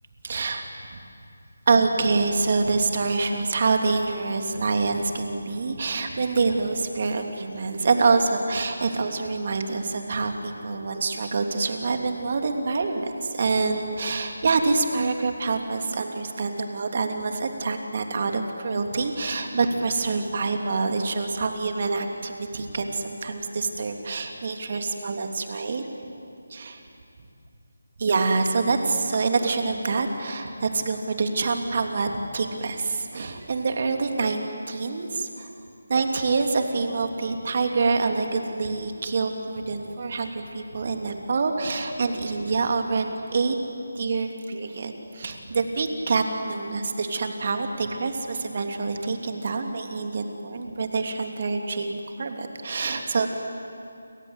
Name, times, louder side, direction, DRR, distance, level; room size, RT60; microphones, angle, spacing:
voice 1, 0.2-0.6 1.7-25.9 26.5-26.8 28.0-35.5 35.9-43.6 43.9-53.3, right 4 dB, 45° right, 5 dB, 3.0 m, -26 dB
29.5 x 24.0 x 8.2 m, 2.5 s
figure-of-eight pair, 160°, 0 cm